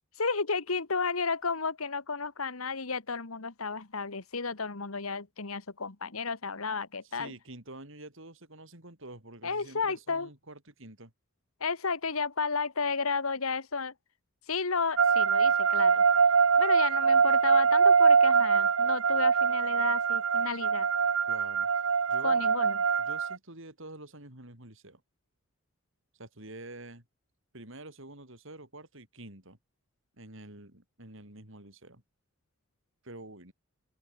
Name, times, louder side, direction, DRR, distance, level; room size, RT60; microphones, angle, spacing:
voice 1, 0.2-7.3 9.4-10.3 11.6-13.9 14.5-16.0 16.6-20.9 22.2-22.8, left 4 dB, 80° left, 1.7 m, -32 dB
voice 2, 7.0-11.1 21.3-21.7 22.1-22.5 23.0-25.0 26.1-27.0 27.5-29.6 30.2-32.0 33.0-33.5, right 2 dB, 65° right, 5.4 m, -47 dB
sound 1, 15.0-23.4, right 5 dB, 80° right, 0.9 m, -23 dB
open air
head